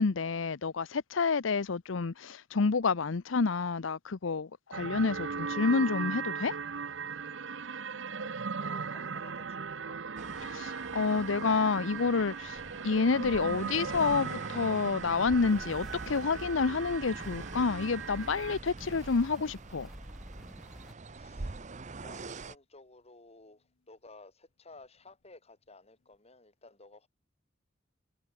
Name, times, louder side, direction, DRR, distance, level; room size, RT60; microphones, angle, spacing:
voice 1, 0.0-6.6 10.4-19.9, left 4 dB, 85° left, 0.7 m, -29 dB
sound 1, 4.7-18.6, right 5 dB, 75° right, 0.9 m, -38 dB
voice 2, 8.1-10.0 21.1-27.1, left 2 dB, 35° left, 4.6 m, -55 dB
sound 2, 10.2-22.6, right 3 dB, 40° right, 0.8 m, -45 dB
sound 3, 15.4-20.9, equal, ahead, 4.0 m, -48 dB
head